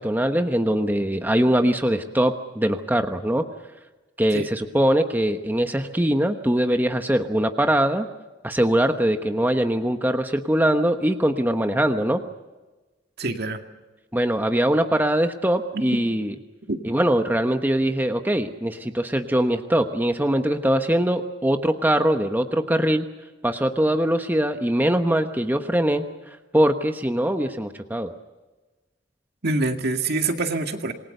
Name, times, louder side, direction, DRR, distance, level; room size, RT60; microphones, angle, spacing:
voice 1, 0.0-3.4 4.2-8.0 8.4-12.2 14.1-16.3 16.8-23.1 23.4-26.1 26.5-28.1, right 1 dB, 10° right, 6 dB, 1.1 m, -22 dB
voice 2, 13.2-13.6 15.7-15.8 16.7-16.8 29.4-30.9, right 2 dB, 60° right, 5 dB, 2.2 m, -25 dB
27.0 x 21.0 x 6.7 m, 1.2 s
head